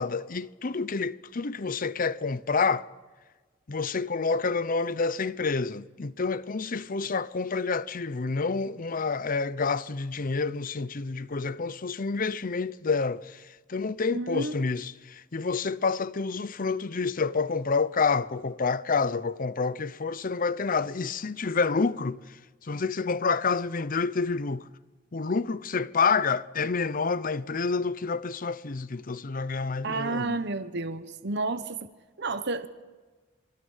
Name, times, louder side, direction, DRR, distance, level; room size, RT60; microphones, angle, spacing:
voice 1, 0.0-2.9 3.7-13.4 13.7-22.2 22.6-24.7 25.1-30.4, left 4 dB, 45° left, 0.7 m, -28 dB
voice 2, 14.1-14.6 29.8-31.8 32.2-32.7, right 3 dB, 60° right, 1.0 m, -31 dB
27.5 x 22.5 x 5.6 m
head